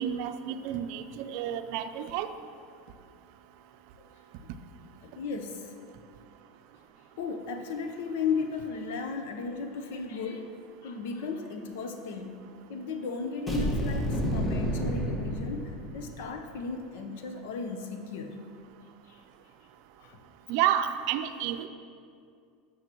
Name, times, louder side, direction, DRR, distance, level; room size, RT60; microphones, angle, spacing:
voice 1, 0.0-2.3 20.5-21.7, right 10 dB, 65° right, 9 dB, 0.5 m, -30 dB
voice 2, 5.0-5.7 7.2-10.5 10.8-12.4 12.7-18.4 19.1-19.2 20.0-20.2, left 4 dB, 75° left, 5 dB, 0.8 m, -35 dB
sound 1, 13.5-16.2, equal, 15° left, 1.4 m, -30 dB
12.0 x 6.5 x 3.0 m, 2.3 s
supercardioid pair, 110°, 0 cm